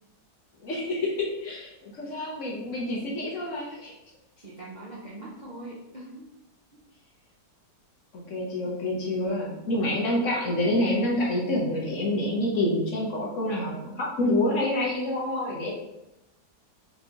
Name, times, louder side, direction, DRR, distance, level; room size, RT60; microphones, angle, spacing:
voice 1, 0.6-3.9 8.1-15.7, left 1 dB, 55° left, -3 dB, 1.1 m, -27 dB
voice 2, 4.4-6.3, right 2 dB, 65° right, -5 dB, 0.4 m, -42 dB
4.3 x 3.4 x 2.9 m, 0.93 s
omnidirectional pair, 1.9 m